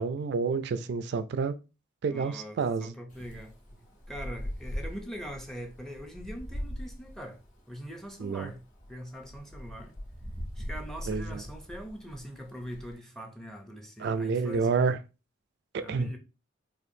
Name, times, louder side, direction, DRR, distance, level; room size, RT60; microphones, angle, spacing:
voice 1, 0.0-1.5 2.0-2.9 8.2-8.5 11.1-11.4 14.0-15.0 15.7-16.1, right 5 dB, 55° right, 0.3 m, -29 dB
voice 2, 2.1-3.5 4.1-7.4 7.7-8.6 8.9-10.0 10.6-14.9 15.8-16.2, equal, ahead, 0.5 m, -42 dB
Wind, 3.1-13.0, equal, 40° left, 1.4 m, -41 dB
4.3 x 2.5 x 2.6 m
head